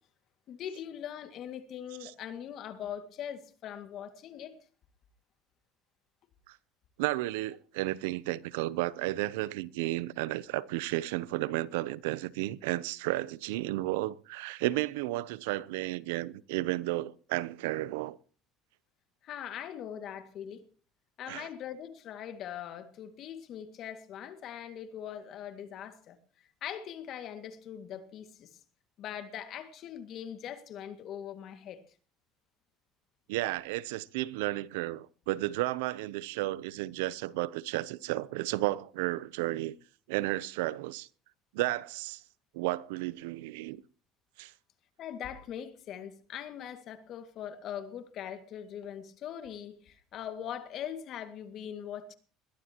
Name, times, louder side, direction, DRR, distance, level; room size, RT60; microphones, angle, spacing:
voice 1, 0.5-4.5 19.2-20.6 21.2-26.2 26.6-28.5 29.0-31.8 45.0-52.1, left 9 dB, 55° left, 2.0 m, -41 dB
voice 2, 7.0-18.2 21.3-21.5 33.3-39.8 40.1-41.1 41.5-42.2 42.5-43.8 44.4-44.5, right 17 dB, 90° right, 0.6 m, -33 dB
21.5 x 14.0 x 2.9 m
supercardioid pair, 100°, 0 cm